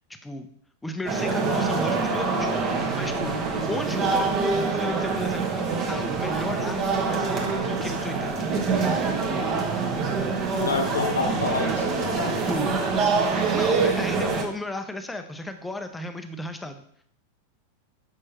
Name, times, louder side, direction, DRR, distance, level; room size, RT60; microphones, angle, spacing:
voice 1, 0.8-3.3 3.7-8.5 10.2-10.4 12.4-12.7 13.4-17.0, left 1 dB, 10° left, 8 dB, 0.6 m, -34 dB
sound 1, 1.1-14.4, right 4 dB, 35° right, 1.1 m, -25 dB
voice 2, 10.6-12.5, left 3 dB, 70° left, 4 dB, 1.0 m, -28 dB
6.2 x 5.5 x 2.9 m, 0.66 s
figure-of-eight pair, 90°, 0 cm